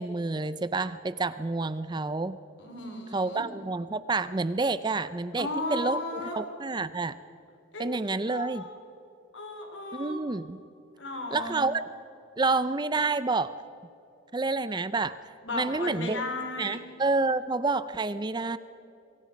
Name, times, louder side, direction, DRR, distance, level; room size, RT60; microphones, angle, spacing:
voice 1, 0.0-2.4 3.1-6.0 6.4-7.1 7.8-8.6 9.9-10.6 11.3-11.8 12.4-13.5 14.3-15.2 15.5-16.2 16.6-18.6, right 3 dB, 20° right, 14 dB, 0.4 m, -28 dB
voice 2, 2.6-3.4 5.4-6.4 7.7-8.0 8.3-8.8 9.3-10.2 11.0-11.6 15.4-16.8, left 2 dB, 65° left, 4 dB, 4.1 m, -35 dB
27.5 x 23.5 x 5.2 m, 2.9 s
head